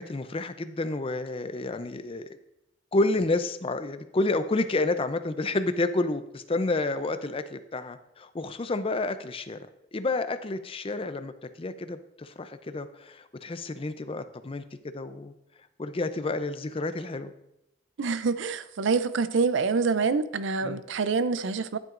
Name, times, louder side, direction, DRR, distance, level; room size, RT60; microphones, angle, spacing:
voice 1, 0.0-2.3 2.9-9.7 9.9-11.3 11.6-14.6 14.9-15.3 15.8-17.3 20.6-20.8, left 2 dB, 30° left, 0.5 m, -30 dB
voice 2, 18.0-21.8, right 4 dB, 70° right, 0.5 m, -26 dB
10.5 x 8.9 x 2.5 m
head